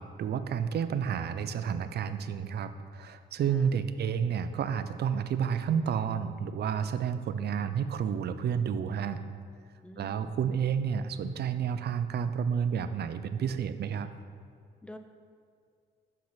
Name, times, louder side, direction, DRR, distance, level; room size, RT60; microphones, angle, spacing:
voice 1, 0.0-9.2 10.0-14.1, right 7 dB, 55° right, 11 dB, 0.5 m, -30 dB
voice 2, 9.8-10.4 14.8-15.0, left 1 dB, 5° left, 7 dB, 0.5 m, -47 dB
6.0 x 5.9 x 5.8 m, 2.3 s
cardioid pair, 90°, 20 cm